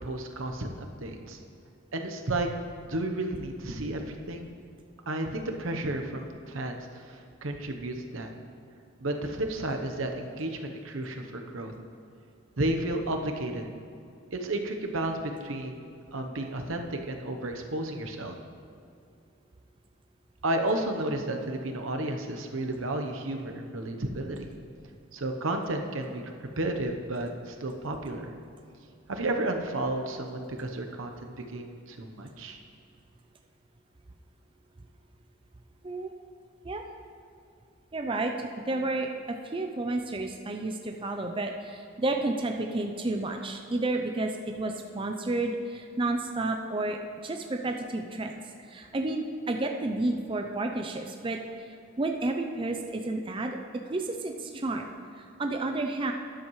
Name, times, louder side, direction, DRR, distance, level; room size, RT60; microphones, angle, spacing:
voice 1, 0.0-1.4 1.9-2.5 2.8-4.5 5.1-8.3 9.0-11.7 12.6-13.7 14.3-15.9 16.1-18.3 20.4-24.5 25.1-26.2 26.6-28.3 29.1-32.6, right 1 dB, 80° right, 4 dB, 0.9 m, -32 dB
voice 2, 37.9-53.6 53.9-54.9 55.2-56.1, right 2 dB, 25° right, 4 dB, 0.5 m, -31 dB
13.0 x 10.5 x 3.2 m, 2.5 s
head